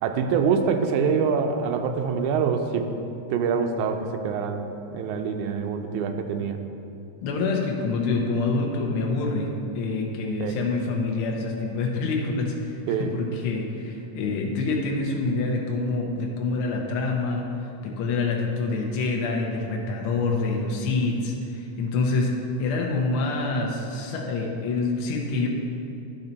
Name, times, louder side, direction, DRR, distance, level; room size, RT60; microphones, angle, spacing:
voice 1, 0.0-2.9 3.3-4.6 4.9-6.6 10.4-10.6 12.9-13.1, right 6 dB, 80° right, 5 dB, 2.0 m, -25 dB
voice 2, 7.2-17.5 17.8-25.5, left 3 dB, 75° left, 0 dB, 1.2 m, -26 dB
10.5 x 4.4 x 4.0 m, 2.7 s
omnidirectional pair, 3.5 m